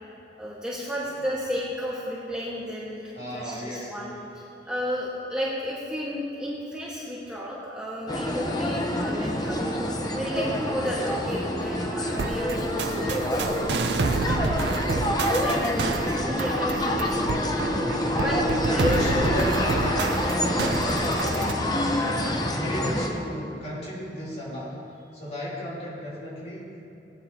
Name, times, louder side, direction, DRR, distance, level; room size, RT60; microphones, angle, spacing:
voice 1, 0.4-9.6 10.1-14.7 15.4-17.6 18.2-18.4 18.7-19.0, equal, 5° right, -7 dB, 1.3 m, -33 dB
voice 2, 3.2-3.9 18.1-24.8 25.1-26.9, equal, 40° left, -7 dB, 3.1 m, -34 dB
sound 1, 8.1-23.1, left 1 dB, 20° left, 0.8 m, -27 dB
sound 2, 12.1-21.5, right 3 dB, 70° right, 0.5 m, -29 dB
19.5 x 9.4 x 2.8 m, 2.7 s
head